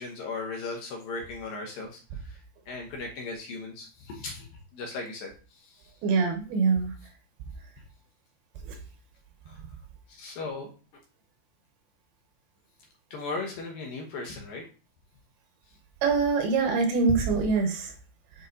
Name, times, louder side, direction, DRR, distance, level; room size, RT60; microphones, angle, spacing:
voice 1, 0.0-2.4 2.7-4.5 4.7-5.3 5.6-5.7 9.5-9.6 10.2-10.7 13.1-14.6, left 3 dB, 70° left, 0 dB, 2.4 m, -37 dB
voice 2, 6.0-6.9 8.7-8.8 16.0-17.9, right 4 dB, 75° right, 3 dB, 2.7 m, -24 dB
7.7 x 4.5 x 2.7 m, 0.35 s
omnidirectional pair, 4.8 m